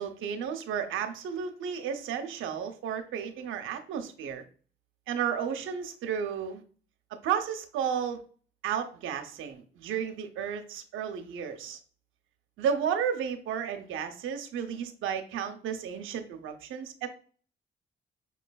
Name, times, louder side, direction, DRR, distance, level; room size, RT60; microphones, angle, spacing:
voice 1, 0.0-4.4 5.1-6.6 7.2-8.2 8.6-11.8 12.6-17.1, right 8 dB, 85° right, 6 dB, 0.7 m, -33 dB
5.8 x 3.1 x 2.3 m, 0.42 s
cardioid pair, 90°, 20 cm